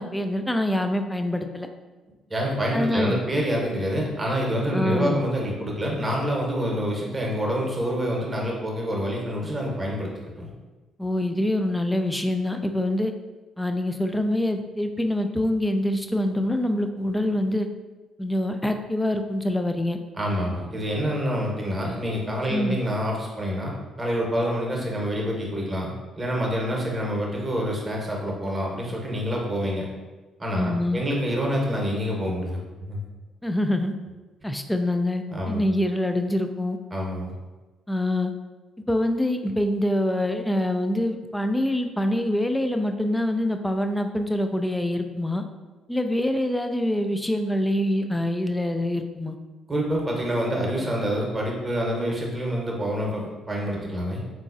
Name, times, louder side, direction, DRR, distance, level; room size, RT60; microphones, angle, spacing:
voice 1, 0.0-1.7 2.7-3.1 4.7-5.2 11.0-13.1 13.6-17.7 18.2-20.0 22.5-22.8 30.6-31.0 33.4-33.9 34.4-36.8 37.9-38.3 38.9-45.4 45.9-49.4, left 1 dB, 10° left, 6 dB, 0.3 m, -25 dB
voice 2, 2.3-10.1 10.4-10.5 20.2-23.7 24.0-29.9 30.4-33.0 35.3-35.6 36.9-37.3 49.7-54.2, equal, 20° right, -2 dB, 1.0 m, -27 dB
3.7 x 2.5 x 2.5 m, 1.2 s
hypercardioid pair, 45°, 0 cm